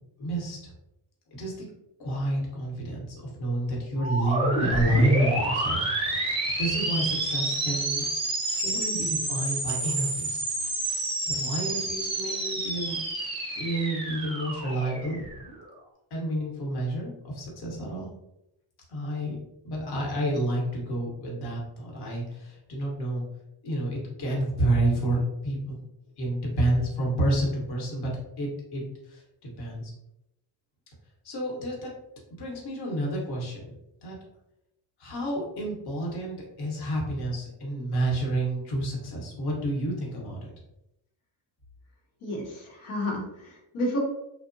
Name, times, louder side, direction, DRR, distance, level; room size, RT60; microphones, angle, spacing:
voice 1, 0.2-0.7 1.3-1.7 2.0-8.0 8.6-10.5 11.2-13.3 13.5-15.3 16.1-18.1 18.9-19.4 19.6-23.2 23.6-25.8 26.2-28.1 28.4-29.9 31.2-31.9 32.4-33.7 34.0-34.2 35.0-40.4, right 1 dB, 55° left, -2 dB, 0.9 m, -29 dB
sound 1, 4.0-15.7, right 2 dB, 10° right, 0.5 m, -29 dB
voice 2, 42.2-44.0, left 1 dB, 90° left, -3 dB, 0.9 m, -31 dB
2.7 x 2.0 x 2.5 m, 0.84 s
cardioid pair, 125°, 48 cm